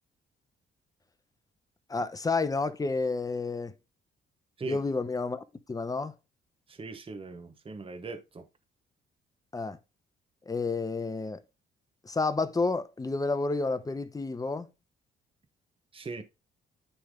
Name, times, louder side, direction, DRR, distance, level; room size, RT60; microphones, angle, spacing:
voice 1, 1.9-3.7 4.7-6.1 9.5-9.8 10.5-11.4 12.0-14.7, left 3 dB, 20° left, 0.8 m, -30 dB
voice 2, 6.7-8.5 15.9-16.2, right 4 dB, 25° right, 1.0 m, -40 dB
9.9 x 3.5 x 3.6 m
cardioid pair, 90°, 20 cm